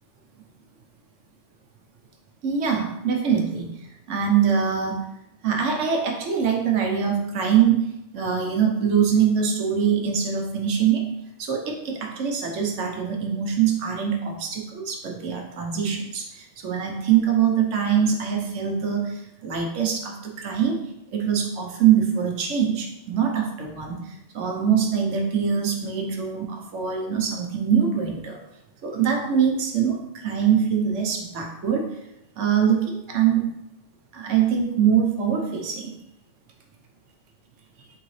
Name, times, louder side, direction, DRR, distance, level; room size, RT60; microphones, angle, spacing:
voice 1, 2.4-3.7 4.1-5.0 5.4-11.1 11.4-20.8 21.1-28.4 28.8-31.9 32.4-33.6 34.1-35.9, right 8 dB, 75° right, 2 dB, 1.1 m, -23 dB
3.8 x 3.5 x 3.1 m, 0.85 s
omnidirectional pair, 1.3 m